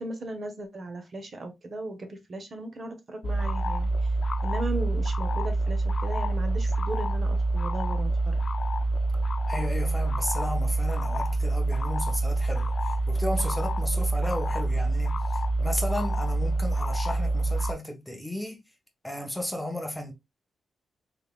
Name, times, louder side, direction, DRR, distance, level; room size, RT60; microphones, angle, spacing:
voice 1, 0.0-4.1 4.4-8.4, right 1 dB, 45° right, 1.0 m, -37 dB
sound 1, 3.2-17.7, right 2 dB, 45° left, 0.5 m, -26 dB
voice 2, 9.5-18.6 19.0-20.1, left 1 dB, 5° left, 0.8 m, -34 dB
3.6 x 3.3 x 2.3 m
cardioid pair, 110°, 0 cm